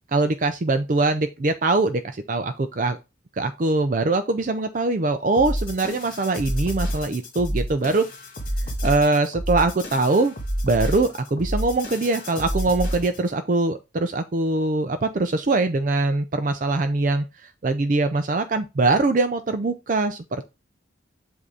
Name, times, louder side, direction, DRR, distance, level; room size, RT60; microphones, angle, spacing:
voice 1, 0.1-3.0 3.4-8.1 8.6-10.3 10.6-17.2 17.6-20.4, right 2 dB, 40° right, 0.4 m, -22 dB
sound 1, 5.3-13.3, equal, 45° left, 1.8 m, -29 dB
7.5 x 2.7 x 4.8 m
head